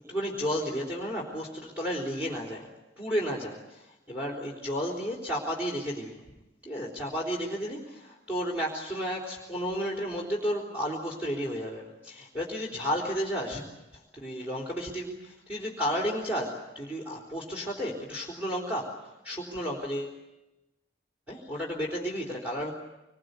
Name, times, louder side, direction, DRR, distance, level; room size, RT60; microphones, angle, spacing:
voice 1, 0.1-2.7 3.0-6.2 6.6-13.6 14.1-20.2 21.3-22.7, equal, 5° right, -2 dB, 3.9 m, -32 dB
25.0 x 22.0 x 8.3 m, 0.99 s
head